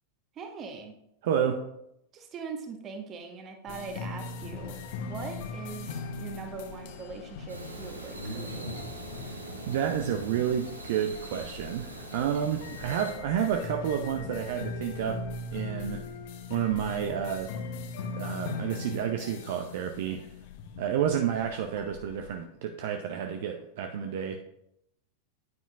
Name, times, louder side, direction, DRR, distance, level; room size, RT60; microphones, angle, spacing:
voice 1, 0.3-0.9 2.1-8.5, right 4 dB, 30° right, 5 dB, 1.2 m, -41 dB
voice 2, 1.2-1.6 9.7-15.2 15.5-16.0 16.5-17.5 18.2-20.3 20.8-24.4, right 9 dB, 55° right, 5 dB, 0.6 m, -30 dB
sound 1, 3.7-22.4, left 4 dB, 50° left, 0.9 m, -40 dB
sound 2, 7.5-13.1, right 2 dB, 85° right, 1.2 m, -41 dB
9.3 x 9.2 x 2.4 m, 0.80 s
figure-of-eight pair, 90°, 0 cm